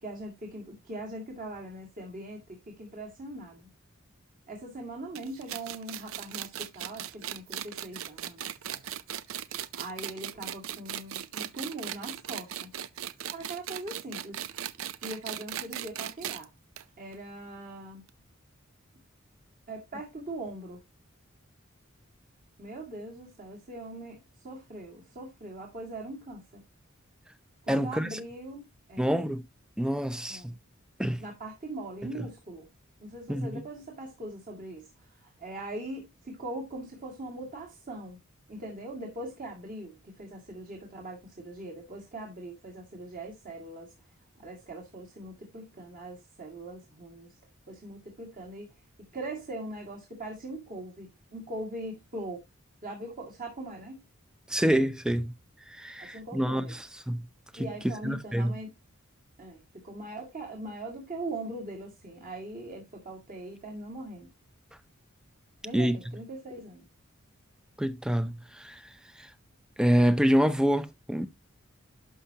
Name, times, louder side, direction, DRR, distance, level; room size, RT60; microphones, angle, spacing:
voice 1, 0.0-3.7 4.5-8.8 9.7-12.7 13.3-14.6 15.0-16.5 17.0-18.0 19.7-20.8 22.6-26.6 27.6-29.2 30.3-30.6 31.2-32.7 33.0-38.2 38.5-43.9 44.4-47.3 47.7-48.8 49.1-52.4 52.8-54.0 56.0-56.8 57.6-58.7 59.4-64.3 65.6-66.9, right 1 dB, 40° right, 2.0 m, -41 dB
sound 1, 5.2-16.4 16.8-16.9 17.1-17.2 18.1-18.2, right 10 dB, 75° right, 0.5 m, -38 dB
voice 2, 27.7-28.1 29.0-29.4 29.8-30.5 31.0-31.2 33.3-33.6 54.5-55.3 55.7-56.7 57.1-57.3 57.5-57.7 58.0-58.6 65.7-66.0 67.8-68.8 69.2-69.3 69.8-71.3, equal, 5° right, 0.6 m, -26 dB
11.5 x 5.6 x 2.8 m
head